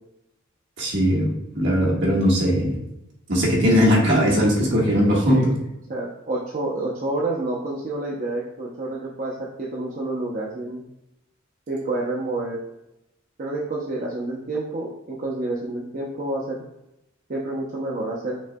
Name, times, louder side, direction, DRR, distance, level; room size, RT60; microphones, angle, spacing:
voice 1, 0.8-2.8 3.3-5.4, equal, 60° right, -4 dB, 1.5 m, -19 dB
voice 2, 5.3-5.6 5.9-10.8 11.7-12.6 13.4-16.6 17.3-18.4, right 2 dB, 40° right, -4 dB, 0.6 m, -28 dB
6.2 x 3.8 x 2.2 m, 0.87 s
head